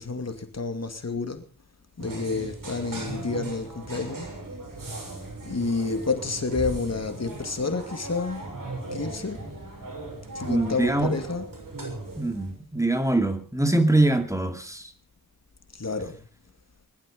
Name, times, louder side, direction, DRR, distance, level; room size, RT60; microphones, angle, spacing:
voice 1, 0.0-1.4 2.0-4.3 5.4-8.4 8.9-9.4 10.3-11.5 15.8-16.2, left 4 dB, 50° left, 2.5 m, -29 dB
sound 1, 2.0-12.5, right 2 dB, 80° right, 6.6 m, -38 dB
voice 2, 10.4-11.1 12.2-14.8, right 2 dB, 10° right, 2.3 m, -23 dB
20.5 x 12.5 x 5.4 m
wide cardioid pair, 70°, 33 cm